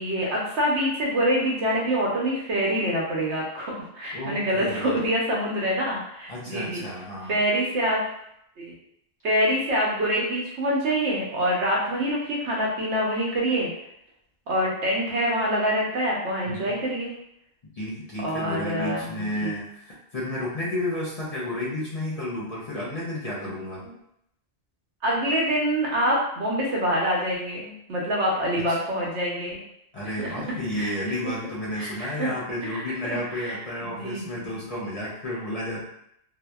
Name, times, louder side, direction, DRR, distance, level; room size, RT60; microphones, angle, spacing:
voice 1, 0.0-6.8 7.3-8.0 8.6-8.7 9.2-13.7 14.5-17.1 18.2-19.5 23.8-23.9 25.0-29.6 30.2-30.9 31.2-31.3 31.8-32.3 32.7-32.8 33.1-34.5, equal, 80° right, -3 dB, 1.0 m, -26 dB
voice 2, 4.1-4.9 6.3-7.4 16.5-16.6 17.7-23.9 28.7-28.8 29.9-35.8, left 1 dB, 45° left, -7 dB, 0.6 m, -32 dB
2.7 x 2.0 x 2.2 m, 0.75 s
omnidirectional pair, 1.1 m